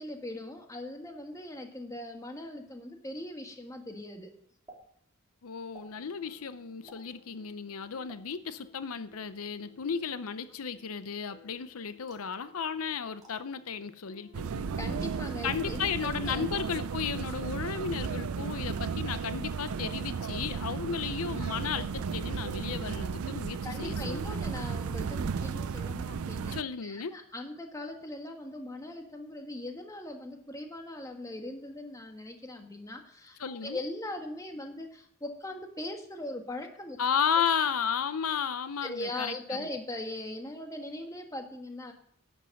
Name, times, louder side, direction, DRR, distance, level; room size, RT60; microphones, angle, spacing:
voice 1, 0.0-4.3 14.7-16.4 21.4-21.5 23.6-37.0 38.8-41.9, left 1 dB, 15° left, 4 dB, 1.5 m, -40 dB
sound 1, 4.7-4.8 5.7-5.9 6.9-7.1 8.1-8.2 9.1-9.4 12.1-12.3 13.2-13.3 14.3-14.4 15.2-15.7 16.3-16.4 17.1-17.4 17.8-18.0 18.5-18.7 20.2-20.6 20.9-21.3, right 2 dB, 20° right, 3.1 m, -55 dB
voice 2, 5.4-14.7 15.4-24.4 26.5-27.2 33.4-33.8 37.0-39.7, left 7 dB, 90° left, 13 dB, 0.6 m, -34 dB
sound 2, 5.8-23.3, left 3 dB, 50° left, 1.9 m, -60 dB
sound 3, 14.3-26.6, right 5 dB, 85° right, 0.5 m, -34 dB
11.0 x 8.0 x 6.4 m, 0.64 s
head